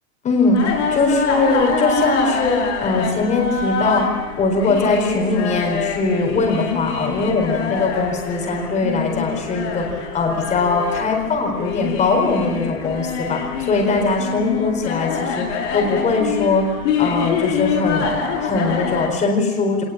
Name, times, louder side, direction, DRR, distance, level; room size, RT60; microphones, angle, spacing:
voice 1, 0.2-15.5 15.7-16.7 17.0-19.8, left 3 dB, 15° left, 3 dB, 4.2 m, -21 dB
sound 1, 0.5-19.1, left 5 dB, 55° left, 6.9 m, -25 dB
25.5 x 19.5 x 8.8 m, 1.3 s
supercardioid pair, 165°, 43 cm